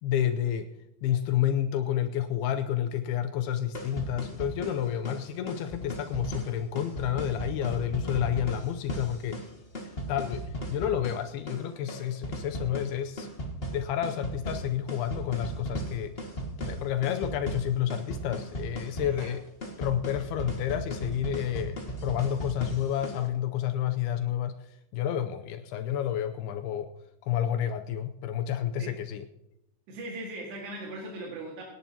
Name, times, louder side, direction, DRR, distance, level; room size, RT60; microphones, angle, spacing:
voice 1, 0.0-0.7 1.0-9.4 9.8-13.3 13.7-16.2 16.6-19.4 19.8-21.8 22.0-24.7 24.9-26.9 27.2-29.3, left 10 dB, 80° left, 8 dB, 2.6 m, -30 dB
sound 1, 3.5-23.3, right 1 dB, 60° left, 0.6 m, -37 dB
voice 2, 19.0-19.3 28.8-29.0 29.9-31.6, right 2 dB, 85° right, -2 dB, 4.1 m, -39 dB
25.5 x 10.5 x 2.9 m, 0.80 s
omnidirectional pair, 4.6 m